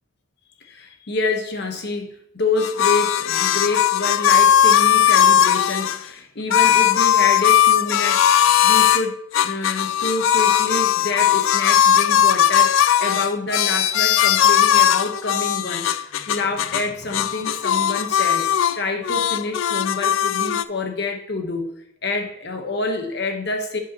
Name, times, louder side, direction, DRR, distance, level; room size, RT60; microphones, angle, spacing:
voice 1, 0.6-21.7 22.0-23.8, left 3 dB, 55° left, 5 dB, 1.1 m, -27 dB
sound 1, 2.6-6.0 6.5-9.0 9.3-16.9 17.1-18.8 19.0-20.6, left 9 dB, 70° left, 0.3 m, -18 dB
8.8 x 7.6 x 2.9 m, 0.75 s
head